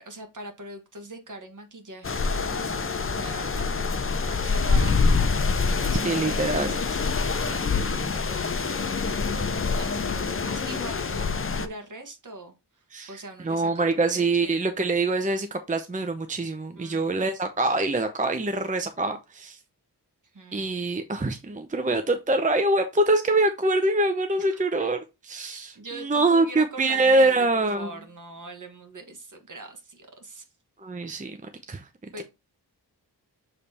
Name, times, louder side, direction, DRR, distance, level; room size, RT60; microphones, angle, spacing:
voice 1, 0.0-2.8 3.1-14.6 16.7-17.3 20.3-20.8 24.4-24.9 25.7-30.5 31.2-31.3 32.1-32.2, right 2 dB, 50° right, 1.6 m, -42 dB
sound 1, 2.0-11.7, left 4 dB, 35° left, 0.7 m, -26 dB
voice 2, 6.0-6.8 12.9-13.1 13.4-19.6 20.5-25.0 25.3-27.9 30.8-31.4 31.7-31.8, right 2 dB, 20° right, 0.6 m, -24 dB
6.9 x 3.3 x 4.2 m
wide cardioid pair, 90°, 40 cm